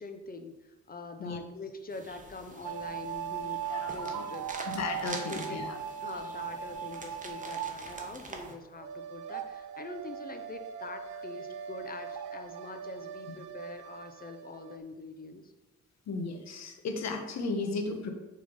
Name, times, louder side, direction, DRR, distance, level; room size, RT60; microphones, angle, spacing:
voice 1, 0.0-4.5 5.1-5.6 6.0-15.5, left 3 dB, 30° left, 7 dB, 0.8 m, -44 dB
sound 1, 1.9-8.5, right 3 dB, 25° right, 1.1 m, -46 dB
sound 2, 2.6-8.5 8.8-14.8, right 8 dB, 90° right, 0.6 m, -39 dB
voice 2, 3.7-4.2 4.7-5.8 16.1-18.1, left 3 dB, 60° left, 5 dB, 1.2 m, -35 dB
6.9 x 3.8 x 5.3 m, 1.1 s
cardioid pair, 90°, 30 cm